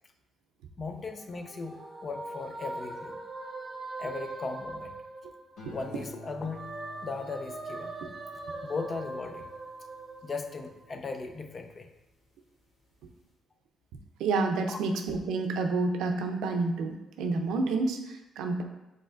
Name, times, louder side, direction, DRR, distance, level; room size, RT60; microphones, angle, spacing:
voice 1, 0.8-3.2 4.0-4.9 5.7-7.9 8.6-9.5 10.2-11.9 14.7-14.8, left 4 dB, 40° left, 6 dB, 0.5 m, -37 dB
sound 1, 0.9-5.8 6.2-11.0, right 2 dB, 35° right, 0.7 m, -42 dB
sound 2, 5.6-12.1 12.6-13.0, equal, 75° left, 1.4 m, -51 dB
voice 2, 14.2-18.6, right 3 dB, 90° right, 4 dB, 0.5 m, -29 dB
5.4 x 3.7 x 2.5 m, 0.96 s
cardioid pair, 90°, 0 cm